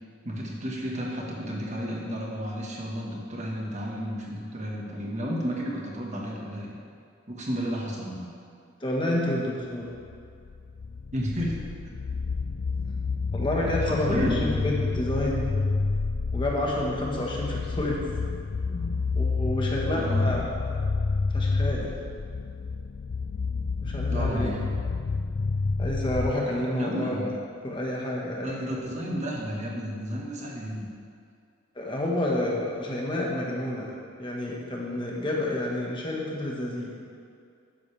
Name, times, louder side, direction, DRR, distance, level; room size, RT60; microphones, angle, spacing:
voice 1, 0.2-6.7 7.3-8.3 11.1-11.6 13.6-14.8 19.9-20.3 24.1-24.6 26.8-27.3 28.4-30.9, equal, 35° right, -2 dB, 1.6 m, -32 dB
voice 2, 8.8-9.9 13.3-15.5 16.3-18.0 18.6-18.8 19.1-20.8 21.3-21.9 23.8-24.5 25.8-27.2 27.6-28.8 31.7-33.9 34.2-36.9, left 1 dB, 25° left, -3 dB, 1.4 m, -29 dB
sound 1, 10.0-26.3, left 4 dB, 60° left, 0.4 m, -29 dB
12.0 x 9.6 x 3.4 m, 2.4 s
head